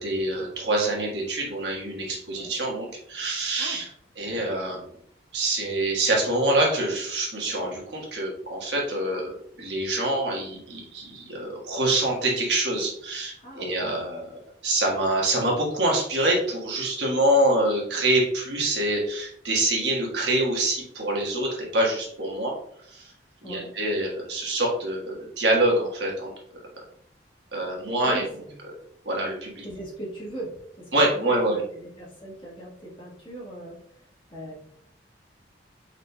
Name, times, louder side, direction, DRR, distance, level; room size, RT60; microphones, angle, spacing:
voice 1, 0.0-3.8 4.2-4.8 5.3-14.3 14.6-22.5 22.9-23.1 23.4-26.3 27.5-28.2 29.0-29.6 30.9-31.6, right 1 dB, 70° right, -2 dB, 1.3 m, -25 dB
voice 2, 4.2-4.5 13.4-14.0 23.4-23.7 28.0-28.6 29.6-34.1 34.3-34.6, right 1 dB, 30° left, -5 dB, 1.5 m, -39 dB
4.8 x 4.1 x 2.2 m, 0.67 s
head